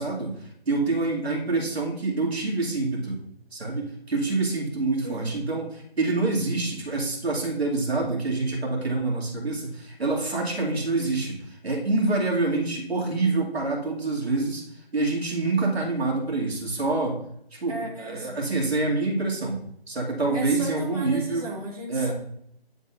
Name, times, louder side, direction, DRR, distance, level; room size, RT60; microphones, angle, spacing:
voice 1, 0.0-3.2 3.5-5.7 6.0-14.7 14.9-17.2 17.5-17.7 18.0-19.6 19.9-21.5 21.9-22.1, right 3 dB, 75° right, -2 dB, 2.3 m, -26 dB
voice 2, 5.0-5.4 17.7-18.4 20.3-22.1, right 1 dB, 40° right, -6 dB, 1.6 m, -35 dB
10.0 x 4.0 x 2.5 m, 0.71 s
figure-of-eight pair, 175°, 32 cm